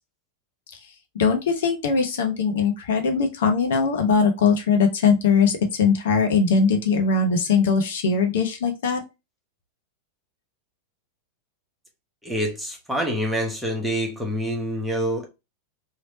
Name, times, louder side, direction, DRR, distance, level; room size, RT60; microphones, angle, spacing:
voice 1, 1.2-9.0, left 5 dB, 60° left, 0.7 m, -21 dB
voice 2, 12.2-15.3, equal, 5° right, 1.1 m, -26 dB
3.1 x 2.9 x 2.7 m
figure-of-eight pair, 90°, 0 cm